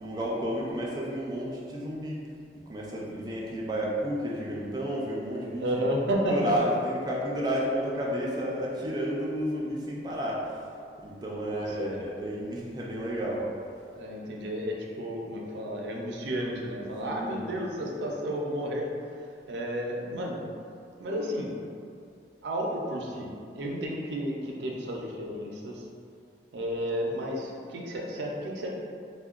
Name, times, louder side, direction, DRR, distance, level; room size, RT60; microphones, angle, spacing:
voice 1, 0.0-2.2 2.7-5.7 6.3-10.7 11.0-13.5 17.0-17.4, equal, 25° right, -4 dB, 0.4 m, -31 dB
voice 2, 5.6-6.5 11.5-12.0 13.9-18.9 19.5-20.4 21.0-21.5 22.4-25.8 26.5-28.7, equal, 80° right, -1 dB, 0.5 m, -32 dB
3.6 x 2.1 x 2.4 m, 2.3 s
head